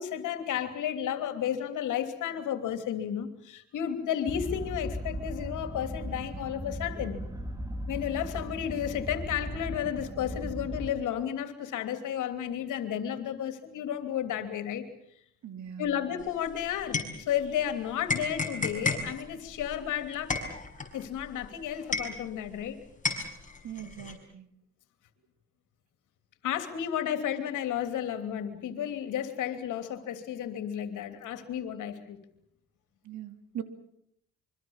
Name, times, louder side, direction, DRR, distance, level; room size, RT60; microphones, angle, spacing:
voice 1, 0.0-7.2 7.9-14.9 15.8-20.3 20.9-22.8 26.4-32.2, left 9 dB, 85° left, 9 dB, 3.1 m, -32 dB
sound 1, 4.3-10.9, equal, 10° right, 3.2 m, -37 dB
voice 2, 15.4-15.9 23.6-24.5 33.0-33.6, right 9 dB, 70° right, 9 dB, 2.9 m, -40 dB
sound 2, 16.2-17.7 18.1-22.7 23.0-24.1, left 3 dB, 25° left, 5.8 m, -33 dB
25.5 x 24.0 x 7.3 m, 0.70 s
cardioid pair, 90°, 30 cm